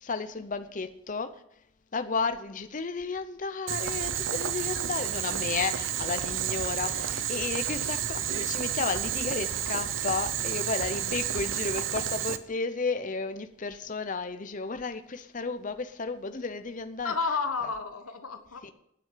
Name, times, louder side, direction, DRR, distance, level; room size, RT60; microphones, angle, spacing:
voice 1, 0.0-1.3 1.9-17.1, left 4 dB, 35° left, 10 dB, 0.6 m, -33 dB
Boiling, 3.7-12.4, right 10 dB, 55° right, 0.7 m, -31 dB
voice 2, 6.8-7.5 17.0-18.7, left 4 dB, 75° left, 8 dB, 1.3 m, -33 dB
9.6 x 7.7 x 7.8 m, 0.73 s
head